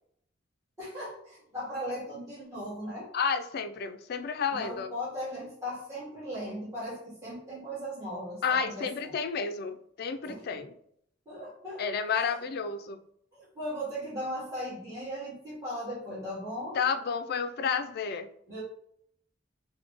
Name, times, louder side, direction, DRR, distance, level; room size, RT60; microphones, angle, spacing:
voice 1, 0.8-3.1 4.5-9.1 10.2-10.6 11.2-11.8 12.1-12.4 13.3-16.8 18.5-18.6, equal, 15° right, -10 dB, 1.4 m, -38 dB
voice 2, 3.1-4.9 8.4-10.7 11.8-13.0 16.7-18.3, left 6 dB, 50° left, 9 dB, 0.3 m, -31 dB
3.8 x 2.1 x 3.5 m, 0.69 s
head